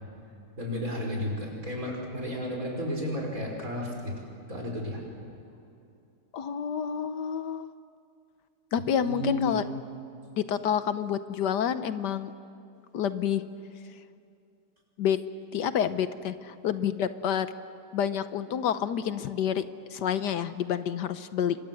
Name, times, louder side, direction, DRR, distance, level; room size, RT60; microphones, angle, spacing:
voice 1, 0.6-4.1 4.5-5.0 9.0-9.5, left 1 dB, 50° right, 0 dB, 6.1 m, -32 dB
voice 2, 6.3-7.7 8.7-9.6 10.4-12.3 12.9-13.4 15.0-15.2 15.5-17.5 17.9-19.6 19.9-21.6, left 8 dB, 75° left, 12 dB, 1.5 m, -28 dB
28.0 x 25.0 x 7.8 m, 2.6 s
omnidirectional pair, 1.9 m